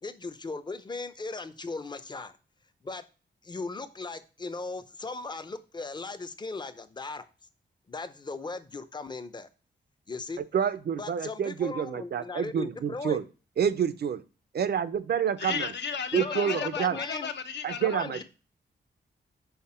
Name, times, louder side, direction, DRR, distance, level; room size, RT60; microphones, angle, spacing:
voice 1, 0.0-2.3 2.8-3.0 3.4-7.2 7.9-9.5 10.1-10.4 11.0-13.2 16.1-17.3 17.8-18.2, left 3 dB, 25° left, 0.5 m, -37 dB
voice 2, 10.5-13.2 13.6-14.2 14.5-15.7 16.1-17.0 17.6-18.2, right 8 dB, 60° right, 0.5 m, -28 dB
voice 3, 15.4-18.2, left 6 dB, 65° left, 0.7 m, -34 dB
5.7 x 4.3 x 4.2 m
wide cardioid pair, 140°, 19 cm